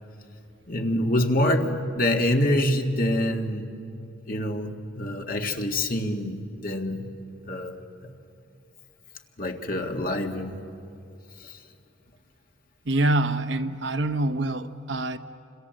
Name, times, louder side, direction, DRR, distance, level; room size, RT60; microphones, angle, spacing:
voice 1, 0.7-3.7 4.3-7.1 7.5-7.8 9.4-10.6 11.4-11.6, left 1 dB, 45° left, 3 dB, 1.9 m, -26 dB
voice 2, 12.9-15.2, right 2 dB, 65° right, 9 dB, 0.9 m, -25 dB
29.0 x 26.5 x 7.8 m, 2.5 s
head